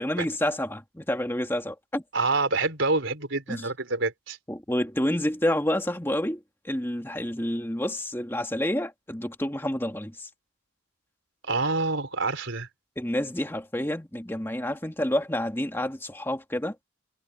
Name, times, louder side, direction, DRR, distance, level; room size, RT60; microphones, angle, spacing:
voice 1, 0.0-2.0 3.5-3.7 4.5-10.3 13.0-16.8, left 1 dB, 10° left, 2.1 m, -29 dB
voice 2, 2.1-4.4 11.4-12.7, right 3 dB, 65° right, 4.1 m, -27 dB
head